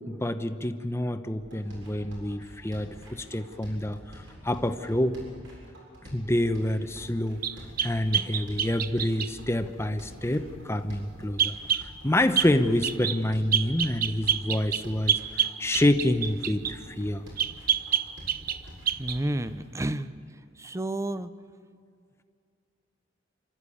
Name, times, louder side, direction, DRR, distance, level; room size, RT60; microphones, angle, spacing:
voice 1, 0.1-4.0 4.4-5.2 6.1-7.4 7.8-11.5 11.8-17.2, left 1 dB, 15° left, 9 dB, 0.9 m, -27 dB
sound 1, 1.4-19.4, equal, 75° right, 7.9 m, -47 dB
sound 2, 7.4-9.3 11.4-11.9 12.4-12.5 12.8-13.2 13.5-16.8 17.4-18.6 18.9-19.2, right 9 dB, 50° right, 0.8 m, -27 dB
voice 2, 19.0-20.1 20.6-21.3, right 1 dB, 15° right, 13 dB, 0.6 m, -30 dB
29.0 x 13.0 x 8.6 m, 2.2 s
head